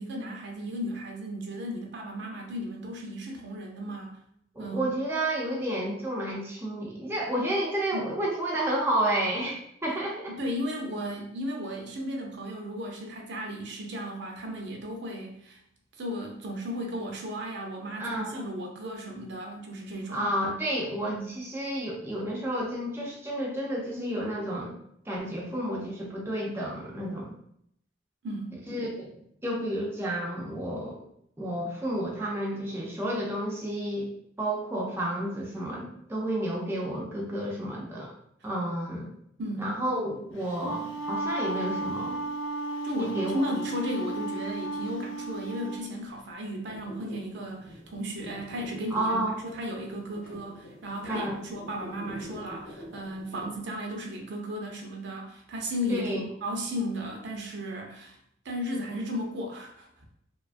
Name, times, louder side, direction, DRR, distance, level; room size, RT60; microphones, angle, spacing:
voice 1, 0.0-4.1 4.6-4.9 7.9-8.1 10.3-15.6 16.0-20.3 21.0-21.3 28.2-28.6 39.4-39.8 42.8-58.2 58.4-59.9, equal, 65° right, 1 dB, 0.5 m, -35 dB
voice 2, 4.6-10.4 18.0-18.3 20.1-24.7 25.1-27.4 28.7-29.1 29.4-31.0 31.4-38.1 38.4-39.1 39.6-42.2 43.0-43.4 48.9-49.4 51.0-51.4 55.9-56.3, right 1 dB, 10° right, -3 dB, 0.4 m, -31 dB
Wind instrument woodwind instrument, 40.4-45.9, right 2 dB, 70° left, 0.4 m, -34 dB
sound 1, 46.7-53.6, equal, 50° left, 0.8 m, -46 dB
2.8 x 2.3 x 2.4 m, 0.71 s
head